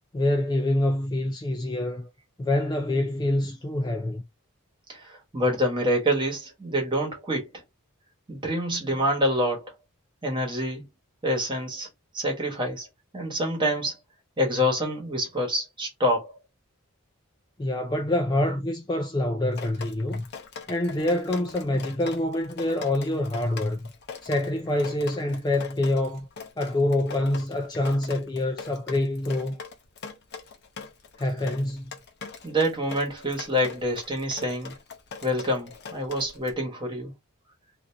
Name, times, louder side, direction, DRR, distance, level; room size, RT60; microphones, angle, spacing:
voice 1, 0.1-2.1 2.4-4.2 17.6-20.3 20.7-23.8 24.2-26.3 26.6-29.6 31.2-31.9, left 1 dB, 20° left, 0.4 m, -26 dB
voice 2, 4.9-7.4 8.3-9.7 10.2-10.8 11.2-11.9 12.1-12.9 13.1-14.0 14.4-16.3 32.4-34.7 35.2-37.1, equal, 20° right, 1.3 m, -26 dB
Drip, 19.5-36.5, left 5 dB, 50° left, 0.7 m, -41 dB
2.9 x 2.5 x 3.3 m
head